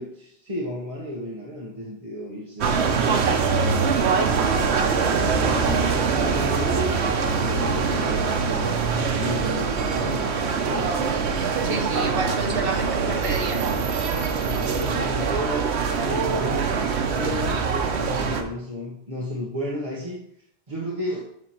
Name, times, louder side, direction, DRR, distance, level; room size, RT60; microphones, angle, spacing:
voice 1, 0.0-2.8 3.5-4.1 5.0-8.7 9.2-10.3 10.6-11.2 14.4-15.7 16.0-16.8 17.1-20.2 20.7-21.2, equal, 35° right, -4 dB, 1.1 m, -33 dB
sound 1, 2.6-18.4, right 5 dB, 90° right, 1.0 m, -23 dB
voice 2, 11.6-13.7, right 3 dB, 60° right, 2 dB, 1.2 m, -29 dB
7.8 x 2.9 x 5.8 m, 0.72 s
omnidirectional pair, 1.1 m